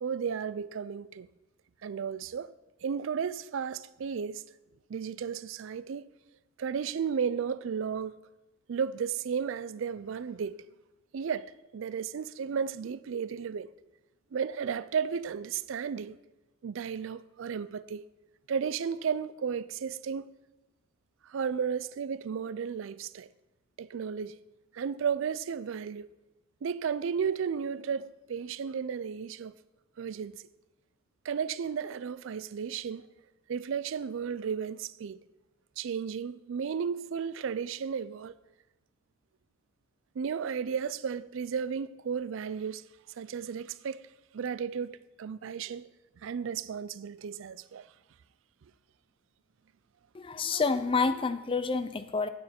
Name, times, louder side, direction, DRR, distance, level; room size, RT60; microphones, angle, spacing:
voice 1, 0.0-1.3 1.8-2.5 2.8-4.4 4.9-6.0 6.6-8.1 8.7-10.6 11.1-13.7 14.3-16.2 16.6-18.0 18.5-20.3 21.2-23.3 23.8-24.4 24.7-26.1 26.6-29.5 30.0-30.4 31.2-33.1 33.5-35.2 35.8-38.4 40.2-42.8 43.2-44.0 44.3-45.9 46.2-47.9, right 6 dB, 65° right, 0.4 m, -34 dB
voice 2, 50.1-52.3, left 4 dB, 25° left, 0.4 m, -28 dB
9.6 x 9.3 x 4.3 m
head